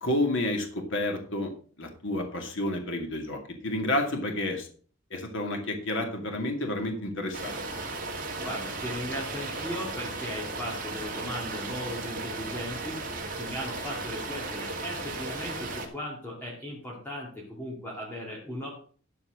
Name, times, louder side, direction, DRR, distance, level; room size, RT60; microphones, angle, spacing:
voice 1, 0.0-1.5 1.8-4.7 5.1-7.6, left 1 dB, 65° left, 3 dB, 2.3 m, -30 dB
sound 1, 7.3-15.9, right 3 dB, 40° right, 2.4 m, -35 dB
voice 2, 8.4-18.7, equal, 10° left, -4 dB, 2.5 m, -37 dB
13.0 x 4.8 x 6.4 m, 0.43 s
head